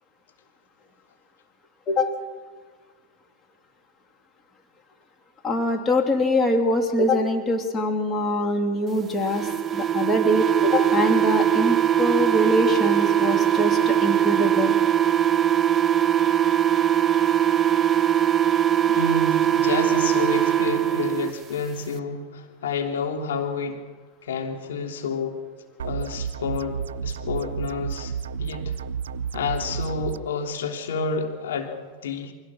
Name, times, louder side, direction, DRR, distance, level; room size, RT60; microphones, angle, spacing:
voice 1, 5.4-14.8, left 1 dB, 25° left, 4 dB, 2.7 m, -24 dB
sound 1, 9.2-21.3, right 10 dB, 25° right, 0.9 m, -21 dB
voice 2, 18.9-23.8 24.2-25.4 25.8-26.8 27.0-28.7 29.3-32.3, left 4 dB, 80° left, 3 dB, 3.1 m, -29 dB
sound 2, 25.8-30.2, right 7 dB, 85° right, 0.6 m, -31 dB
24.0 x 17.0 x 6.3 m, 1.3 s
hypercardioid pair, 110°, 0 cm